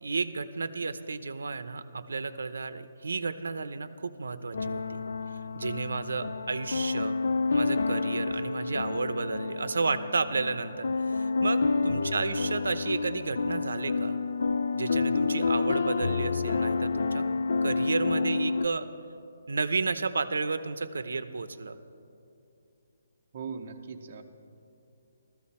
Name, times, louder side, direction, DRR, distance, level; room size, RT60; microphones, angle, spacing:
voice 1, 0.0-5.0 5.5-7.2 7.5-14.2 14.7-17.3 17.6-18.9 19.5-21.8, right 4 dB, 85° right, 13 dB, 0.6 m, -32 dB
sound 1, 4.5-18.7, left 4 dB, 60° left, 0.3 m, -29 dB
voice 2, 11.6-12.2 23.3-24.2, right 5 dB, 25° right, 3 dB, 0.6 m, -41 dB
15.0 x 13.5 x 4.2 m, 2.6 s
hypercardioid pair, 180°, 0 cm